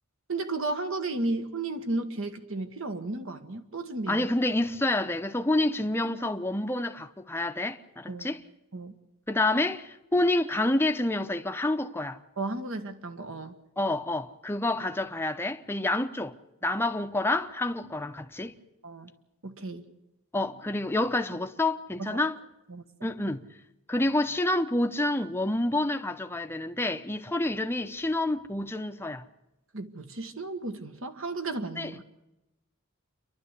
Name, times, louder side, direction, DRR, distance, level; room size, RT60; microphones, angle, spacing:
voice 1, 0.3-4.3 8.1-8.3 8.7-8.9 12.4-13.5 18.8-19.1 19.4-19.8 22.0-22.2 22.7-22.8 29.7-32.0, right 2 dB, 65° right, 1.6 m, -33 dB
voice 2, 4.1-8.4 9.3-12.2 13.8-16.4 16.6-18.5 20.3-22.4 23.0-23.4 23.9-29.2 31.8-32.0, left 2 dB, 10° left, 0.7 m, -28 dB
28.0 x 12.0 x 8.1 m
head